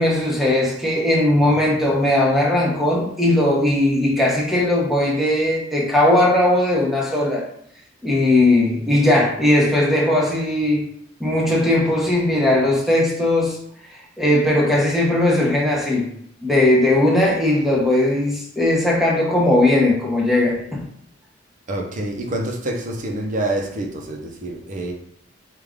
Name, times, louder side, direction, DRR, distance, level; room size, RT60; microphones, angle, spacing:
voice 1, 0.0-7.4 8.0-10.8 11.2-13.6 14.2-16.0 16.4-20.8, left 1 dB, ahead, -3 dB, 0.9 m, -18 dB
voice 2, 21.7-24.9, right 1 dB, 40° right, 2 dB, 0.7 m, -27 dB
4.8 x 2.4 x 3.6 m, 0.68 s
head